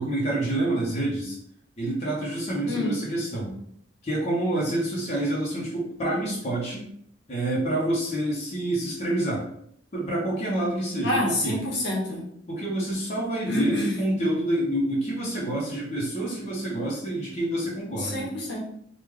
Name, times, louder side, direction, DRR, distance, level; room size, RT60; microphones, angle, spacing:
voice 1, 0.0-1.4 1.8-3.5 4.0-6.8 7.3-9.4 9.9-11.2 11.4-11.6 12.5-18.3, right 1 dB, 35° left, -6 dB, 0.9 m, -27 dB
voice 2, 11.0-12.2 13.5-13.9 18.0-18.6, left 1 dB, 60° left, -4 dB, 1.1 m, -27 dB
3.2 x 2.5 x 3.7 m, 0.69 s
head